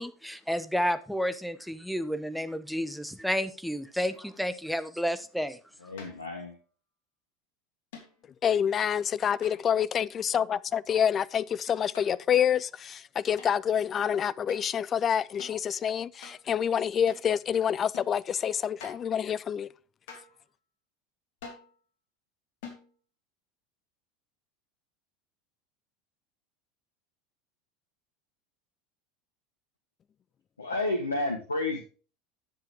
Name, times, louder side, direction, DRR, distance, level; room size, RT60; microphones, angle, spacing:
voice 1, 0.0-5.6, equal, ahead, 0.9 m, -31 dB
sound 1, 4.0-4.4 6.0-6.4 7.9-8.3 9.4-9.9 11.7-12.4 13.4-13.6 14.5-14.7 15.4-15.6 16.2-16.4 17.1-17.3 17.9-18.2 18.8-19.1 20.1-20.4 21.4-21.7 22.6-22.9, left 5 dB, 60° left, 2.9 m, -48 dB
voice 2, 5.8-6.6 30.6-31.8, left 2 dB, 85° left, 1.1 m, -31 dB
voice 3, 8.4-19.7, left 8 dB, 35° left, 0.4 m, -27 dB
10.5 x 7.5 x 3.5 m
figure-of-eight pair, 75°, 0 cm